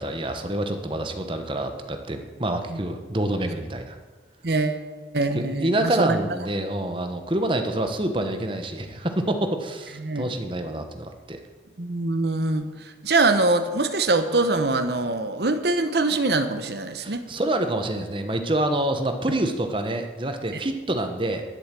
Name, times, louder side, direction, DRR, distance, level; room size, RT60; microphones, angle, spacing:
voice 1, 0.0-4.0 5.3-11.4 17.0-21.4, right 1 dB, 30° right, 6 dB, 1.0 m, -27 dB
voice 2, 4.4-4.8 5.1-6.2 10.0-10.3 11.8-12.7 13.0-17.2, right 2 dB, 65° right, 9 dB, 1.0 m, -23 dB
11.0 x 8.1 x 7.5 m, 1.3 s
head